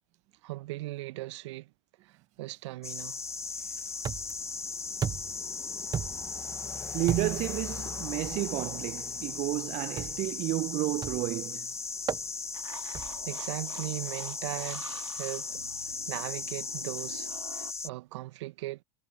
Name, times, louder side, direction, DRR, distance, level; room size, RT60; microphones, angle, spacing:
voice 1, 0.4-1.7 2.0-3.2 12.7-13.0 13.3-15.6 16.1-18.8, right 19 dB, 65° right, 1.7 m, -39 dB
sound 1, 2.8-17.9, left 4 dB, 15° left, 2.0 m, -37 dB
sound 2, 4.0-4.5 5.0-5.5 5.9-6.4 7.1-7.5 8.2-8.4 10.0-10.3 11.0-11.4 12.1-12.3 12.9-13.3, right 8 dB, 25° right, 0.9 m, -35 dB
voice 2, 6.9-11.7, right 19 dB, 45° right, 1.1 m, -31 dB
sound 3, 12.5-17.7, right 5 dB, 85° right, 4.8 m, -48 dB
figure-of-eight pair, 75°, 16 cm